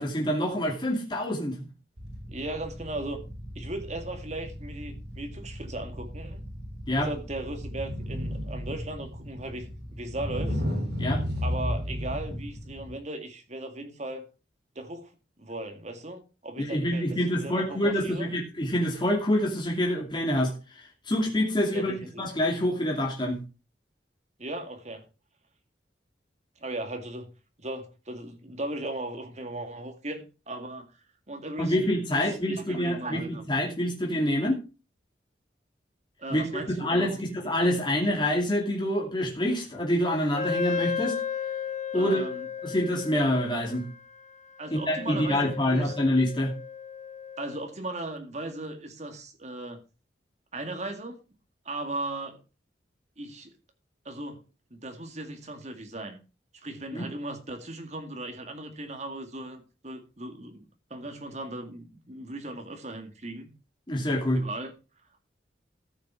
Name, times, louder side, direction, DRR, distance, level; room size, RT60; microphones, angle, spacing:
voice 1, 0.0-1.7 6.9-7.1 11.0-11.2 16.6-23.4 31.6-34.6 36.3-41.2 41.9-42.3 42.6-43.9 44.7-46.5 56.9-57.0 63.9-64.4, left 1 dB, 25° left, -1 dB, 2.5 m, -26 dB
sound 1, 2.0-12.9, equal, 75° right, 3.9 m, -34 dB
voice 2, 2.3-3.2 3.6-6.4 7.0-10.6 11.4-14.3 14.8-15.1 15.4-18.3 21.7-22.2 24.4-25.0 26.6-27.3 27.6-30.9 31.3-33.4 36.2-37.2 41.9-42.5 44.6-46.0 47.4-49.8 50.5-51.2 51.7-52.4 53.2-53.5 54.1-54.4 54.7-56.2 56.6-63.5 64.3-64.7, right 2 dB, 40° right, 5 dB, 2.1 m, -37 dB
Wind instrument woodwind instrument, 40.3-47.7, left 7 dB, 40° left, 0.9 m, -35 dB
13.5 x 6.5 x 4.7 m, 0.31 s
head